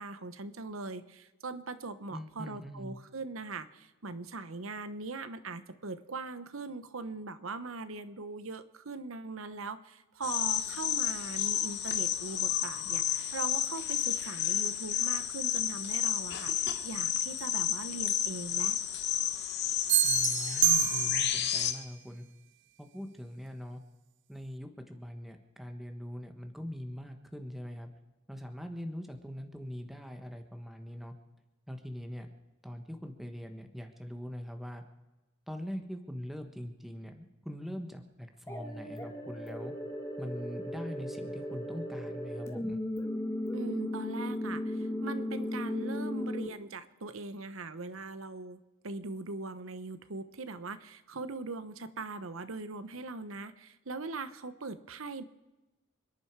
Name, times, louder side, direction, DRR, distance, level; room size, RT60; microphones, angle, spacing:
voice 1, 0.0-18.8 43.5-48.6 48.8-55.2, right 3 dB, 80° right, 12 dB, 1.0 m, -41 dB
voice 2, 2.1-3.0 20.0-22.2 22.8-23.8 24.3-27.9 28.3-31.1 31.7-32.3 32.6-34.8 35.5-39.7 40.2-42.8, equal, ahead, 5 dB, 1.2 m, -42 dB
sound 1, 10.2-21.7, left 10 dB, 55° left, 1.4 m, -31 dB
sound 2, 19.9-21.5, right 16 dB, 60° right, 0.5 m, -27 dB
sound 3, 38.5-46.5, left 1 dB, 15° left, 2.0 m, -36 dB
28.5 x 11.0 x 4.7 m, 1.1 s
head